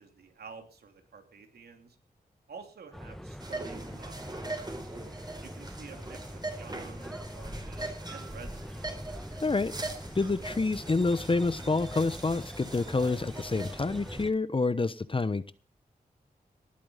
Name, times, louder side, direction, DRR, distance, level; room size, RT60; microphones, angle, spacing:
voice 1, 0.0-2.0 2.5-5.0 5.4-8.9, right 5 dB, 85° right, 5 dB, 3.2 m, -50 dB
sound 1, 2.9-14.3, equal, ahead, 1.5 m, -43 dB
sound 2, 3.4-14.2, right 2 dB, 25° right, 4.4 m, -42 dB
voice 2, 9.4-15.5, left 3 dB, 35° left, 14 dB, 1.0 m, -28 dB
19.5 x 8.7 x 5.6 m, 0.38 s
cardioid pair, 60°, 16 cm